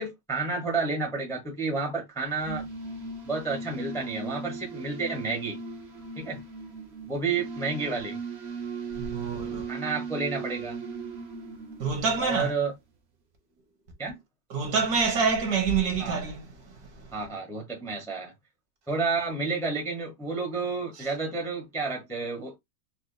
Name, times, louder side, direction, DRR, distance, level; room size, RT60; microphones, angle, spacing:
voice 1, 0.0-2.7 3.2-5.6 6.2-6.4 7.0-8.2 9.7-10.8 12.2-12.7 14.0-14.2 16.0-16.2 17.1-18.3 18.9-22.6, right 4 dB, 5° left, 0.7 m, -30 dB
sound 1, 2.3-12.7, right 4 dB, 50° right, 0.9 m, -38 dB
voice 2, 9.0-9.7 11.8-12.5 14.5-17.0, right 5 dB, 75° right, 1.6 m, -27 dB
4.2 x 2.2 x 2.6 m
omnidirectional pair, 1.7 m